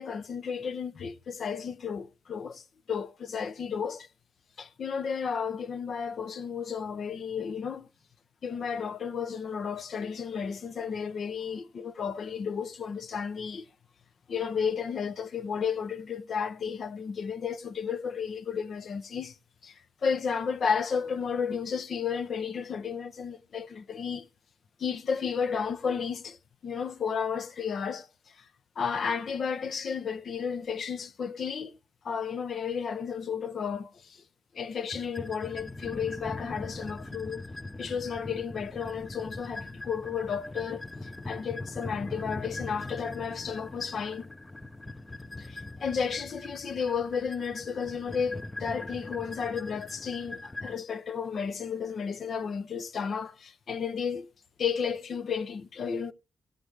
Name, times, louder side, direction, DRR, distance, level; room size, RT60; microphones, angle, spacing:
voice 1, 0.0-2.6 2.9-4.1 4.6-7.9 8.4-13.7 14.3-19.3 19.6-19.7 20.0-24.3 24.8-26.4 26.6-28.1 28.8-31.8 32.0-34.2 34.5-37.4 37.8-44.3 45.4-54.3 54.6-56.1, left 6 dB, 50° left, 0.7 m, -33 dB
sound 1, 34.9-50.7, left 2 dB, 10° left, 0.6 m, -41 dB
17.5 x 7.8 x 3.3 m
cardioid pair, 120°, 0 cm